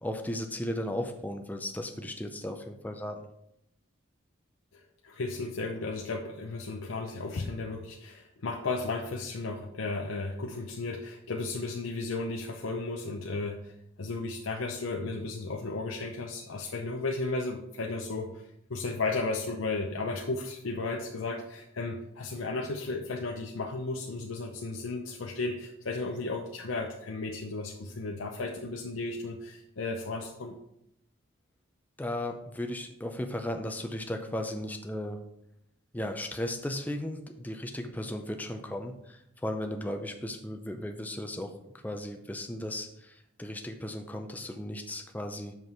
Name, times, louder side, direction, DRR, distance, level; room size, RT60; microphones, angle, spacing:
voice 1, 0.0-3.3 32.0-35.2 35.9-41.5 41.8-45.6, left 1 dB, 10° left, 5 dB, 0.5 m, -36 dB
voice 2, 4.7-30.6, left 3 dB, 85° left, 1 dB, 0.6 m, -34 dB
6.0 x 5.6 x 4.4 m, 0.79 s
head